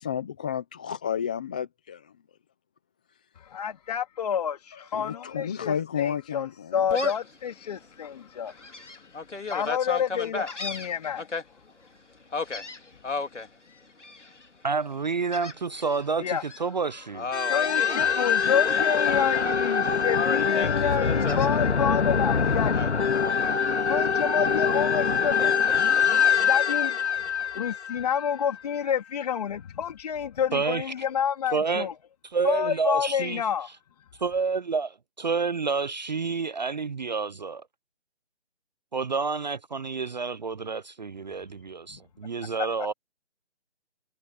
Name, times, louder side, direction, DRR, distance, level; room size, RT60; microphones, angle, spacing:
voice 1, 0.0-2.1 3.1-3.2 4.7-6.8, left 8 dB, 5° left, 0.7 m, -32 dB
voice 2, 3.5-6.5 6.7-8.9 9.5-11.3 16.2-16.4 17.4-23.1 23.9-25.5 26.4-27.0 27.5-31.9 32.4-33.7 41.9-42.0, left 8 dB, 35° left, 3.7 m, -29 dB
Gull seagull, 6.9-7.3 7.8-7.9 8.5-11.4 12.3-13.5 14.0-14.5 15.3-16.0 16.3-16.6 17.1-18.7 19.0-19.8 20.1-21.5 22.7-23.7, left 3 dB, 85° left, 3.2 m, -34 dB
voice 3, 14.6-17.3 30.5-30.9 31.5-31.9 32.2-33.4 34.2-37.6 38.9-42.9, right 4 dB, 40° right, 0.7 m, -29 dB
sound 1, 17.3-28.5, left 6 dB, 70° left, 2.3 m, -24 dB
figure-of-eight pair, 160°, 35 cm